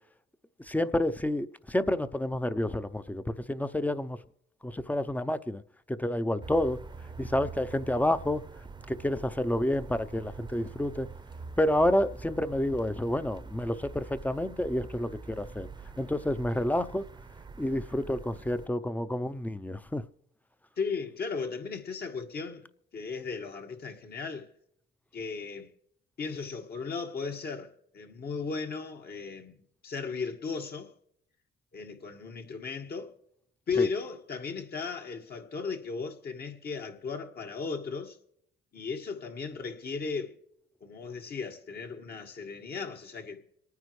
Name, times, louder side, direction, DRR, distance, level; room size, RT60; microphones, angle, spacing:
voice 1, 0.7-3.2 3.5-4.2 4.6-5.6 5.9-6.8 7.2-8.4 8.9-11.1 11.6-15.7 16.0-17.1 17.6-20.0 33.8-33.9, left 1 dB, 10° left, 0.6 m, -29 dB
sound 1, 6.4-18.7, right 4 dB, 20° right, 0.7 m, -45 dB
voice 2, 20.8-22.6 22.9-24.5 25.1-25.7 26.2-30.9 31.7-33.1 33.7-38.2 38.7-40.4 40.8-43.4, left 5 dB, 55° left, 1.8 m, -36 dB
26.5 x 9.5 x 3.2 m
cardioid pair, 90°, 20 cm